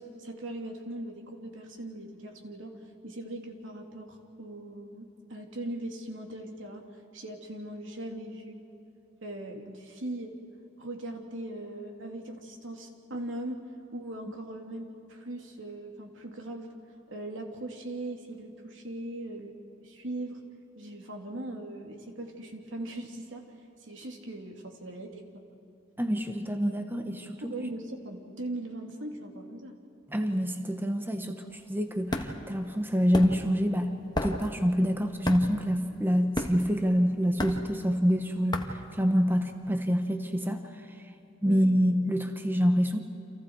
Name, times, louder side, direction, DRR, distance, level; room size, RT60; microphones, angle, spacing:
voice 1, 0.0-2.8 3.0-6.8 7.1-8.6 9.2-10.3 10.8-13.6 13.9-16.7 17.1-19.5 19.8-20.4 20.7-23.4 23.8-25.4 27.4-29.7 41.4-41.7, right 1 dB, 85° right, 2 dB, 2.9 m, -39 dB
voice 2, 26.0-27.5 30.1-33.9 34.2-38.6 38.9-40.6 41.4-43.0, equal, 10° right, 6 dB, 1.2 m, -26 dB
sound 1, 31.5-39.7, left 1 dB, 25° left, 1.5 m, -35 dB
29.5 x 27.5 x 4.8 m, 3.0 s
head